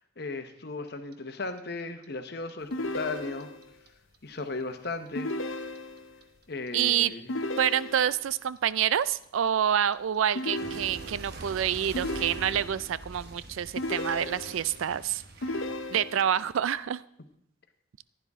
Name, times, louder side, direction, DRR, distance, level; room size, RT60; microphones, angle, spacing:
voice 1, 0.2-3.5 4.2-5.3 6.5-7.3, left 3 dB, 50° left, 7 dB, 1.0 m, -36 dB
Clock, 0.9-3.9 4.1-7.1 7.4-16.3, right 2 dB, 50° right, 1.0 m, -45 dB
sound 1, 2.7-3.7 5.2-6.2 7.3-8.3 10.4-11.4 11.9-12.9 13.8-14.8 15.4-16.4, left 1 dB, 75° left, 0.7 m, -35 dB
voice 2, 6.7-7.1 7.6-15.2 15.9-17.0, right 9 dB, 80° right, 18 dB, 0.4 m, -27 dB
15.0 x 10.5 x 3.6 m, 0.68 s
head